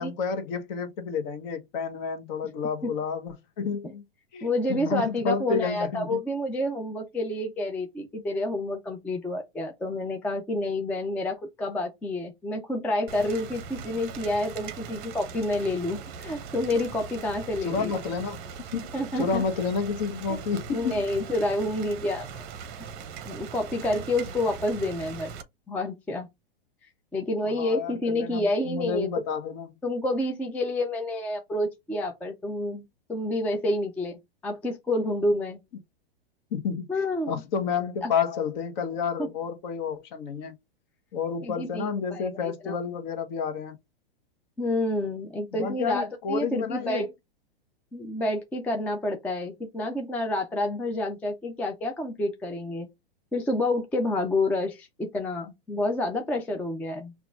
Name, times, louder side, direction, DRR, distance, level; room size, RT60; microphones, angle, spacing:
voice 1, 0.0-4.0 4.3-6.2 17.6-18.4 18.7-18.9 19.2-21.0 27.4-29.8 36.5-36.9 37.3-40.6 41.1-43.7 45.5-47.0, left 6 dB, 50° left, 1.2 m, -30 dB
voice 2, 4.4-17.9 18.9-19.4 20.3-20.4 20.7-22.3 23.3-25.3 25.7-26.3 27.1-29.1 29.8-35.6 36.9-37.4 38.0-38.1 39.2-39.3 41.4-42.4 42.6-42.7 44.6-47.1 47.9-52.9 53.3-57.1, left 1 dB, 5° left, 0.4 m, -29 dB
Rain, 13.1-25.4, right 6 dB, 35° right, 0.7 m, -40 dB
5.7 x 2.4 x 2.5 m
hypercardioid pair, 125°, 30 cm